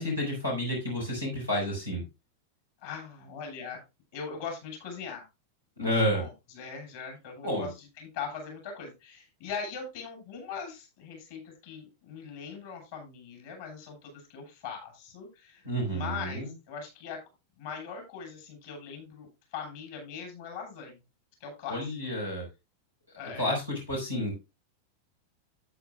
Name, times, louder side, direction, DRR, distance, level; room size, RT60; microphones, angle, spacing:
voice 1, 0.0-2.0 5.8-6.2 7.4-7.7 15.6-16.5 21.7-22.5 23.4-24.4, equal, 85° left, -3 dB, 5.4 m, -30 dB
voice 2, 2.8-3.8 4.1-5.3 5.8-6.3 6.5-7.7 8.0-17.2 17.6-21.0 21.4-21.8 23.2-23.6, left 6 dB, 55° left, 2 dB, 7.0 m, -40 dB
13.0 x 9.0 x 2.4 m, 0.25 s
figure-of-eight pair, 90°, 0 cm